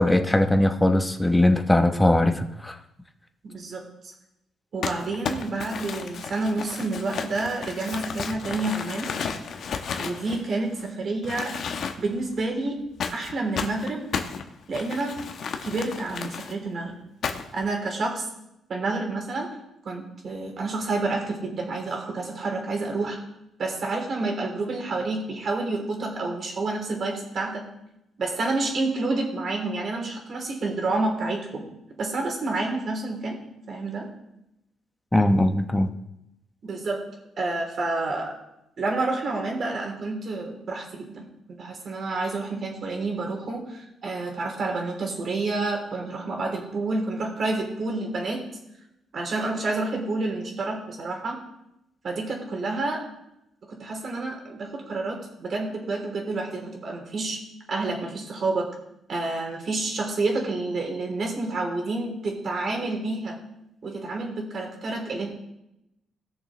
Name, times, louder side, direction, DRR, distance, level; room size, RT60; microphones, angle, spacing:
voice 1, 0.0-2.8 35.1-35.9, left 1 dB, 10° left, 6 dB, 1.0 m, -20 dB
voice 2, 3.4-3.8 4.7-9.1 10.0-11.5 12.0-12.8 13.1-14.1 14.7-15.1 15.6-16.9 17.5-18.3 18.7-19.5 19.8-23.2 23.6-27.6 28.2-31.7 32.0-33.4 33.7-34.1 36.6-37.0 37.4-38.3 38.8-48.4 49.1-51.4 52.0-53.0 53.7-57.4 57.7-58.7 59.1-63.4 63.8-65.3, right 3 dB, 50° right, 0 dB, 3.4 m, -29 dB
Crumpling crinkling, 4.8-10.9 11.2-12.2 13.0-16.5 17.2-17.7, left 6 dB, 60° left, 1.1 m, -33 dB
18.0 x 6.8 x 3.3 m, 0.86 s
cardioid pair, 90°, 0 cm